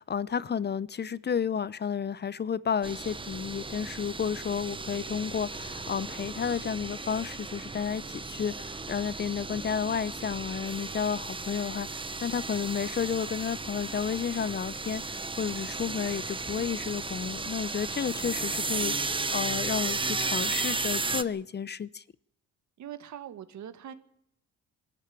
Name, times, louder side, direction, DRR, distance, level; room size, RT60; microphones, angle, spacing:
voice 1, 0.0-22.0, left 7 dB, 35° left, 0.7 m, -32 dB
sound 1, 2.8-21.2, right 3 dB, 15° right, 1.1 m, -34 dB
voice 2, 22.8-23.9, right 10 dB, 70° right, 1.9 m, -43 dB
21.5 x 14.0 x 9.7 m
cardioid pair, 90°, 30 cm